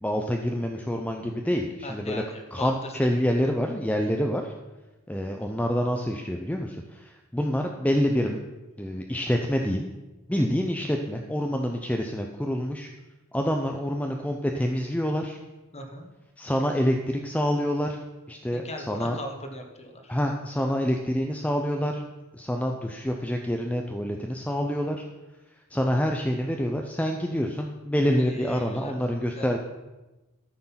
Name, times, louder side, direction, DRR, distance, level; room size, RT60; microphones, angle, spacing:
voice 1, 0.0-2.2 2.5-4.5 5.1-8.4 8.8-9.9 10.3-12.9 13.3-15.4 16.4-18.0 18.3-19.2 20.1-22.0 22.3-25.1 25.7-29.6, equal, 5° left, 2 dB, 0.7 m, -27 dB
voice 2, 1.8-3.5 15.7-16.1 18.5-20.1 28.2-28.9 29.3-29.6, left 1 dB, 30° left, 4 dB, 1.4 m, -38 dB
13.5 x 6.5 x 5.8 m, 1.1 s
head